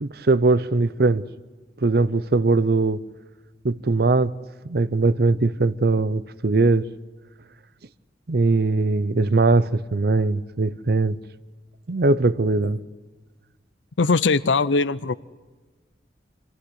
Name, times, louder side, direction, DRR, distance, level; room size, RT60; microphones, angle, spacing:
voice 1, 0.0-1.3 1.8-3.0 3.6-4.3 4.6-6.9 8.3-11.2 11.9-12.8, right 3 dB, 60° right, 0.7 m, -20 dB
voice 2, 14.0-15.2, left 4 dB, 90° left, 0.6 m, -20 dB
25.5 x 15.5 x 9.7 m
head